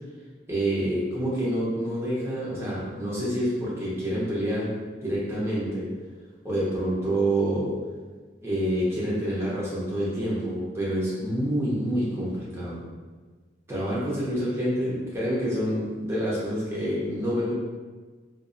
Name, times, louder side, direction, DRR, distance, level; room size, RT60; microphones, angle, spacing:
voice 1, 0.5-4.7 5.0-5.9 6.4-7.7 8.4-12.8 13.7-17.5, right 1 dB, 15° right, -8 dB, 0.7 m, -27 dB
2.6 x 2.0 x 2.4 m, 1.4 s
head